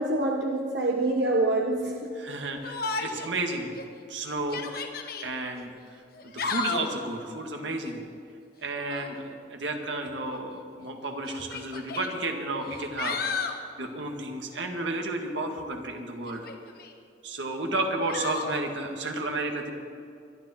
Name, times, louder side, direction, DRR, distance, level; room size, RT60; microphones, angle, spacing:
voice 1, 0.0-2.1, right 2 dB, 65° right, 0 dB, 1.2 m, -26 dB
voice 2, 2.2-3.8 4.1-4.9 5.2-5.7 6.2-8.0 8.6-16.4 17.2-19.7, right 2 dB, 80° right, 3 dB, 1.9 m, -32 dB
Yell, 2.6-3.3 3.8-3.9 4.4-5.3 6.1-7.0 8.7-9.2 10.3-10.4 11.3-12.1 12.6-13.6 16.3-16.9 18.1-18.6, left 4 dB, 55° left, 1.2 m, -33 dB
24.0 x 10.5 x 4.4 m, 2.4 s
head